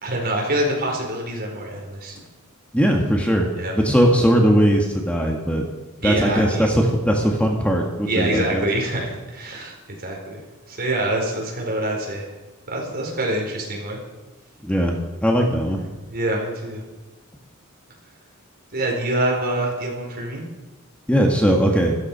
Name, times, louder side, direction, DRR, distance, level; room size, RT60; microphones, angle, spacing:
voice 1, 0.0-2.2 3.5-3.8 6.0-6.7 8.0-12.3 12.7-14.0 15.7-16.8 18.7-20.4, right 1 dB, 45° right, 0 dB, 4.2 m, -26 dB
voice 2, 2.7-3.5 3.8-5.6 6.0-8.6 14.6-15.0 15.2-15.8 21.1-22.0, equal, 5° left, 1 dB, 1.5 m, -19 dB
14.0 x 13.5 x 5.5 m, 1.2 s
head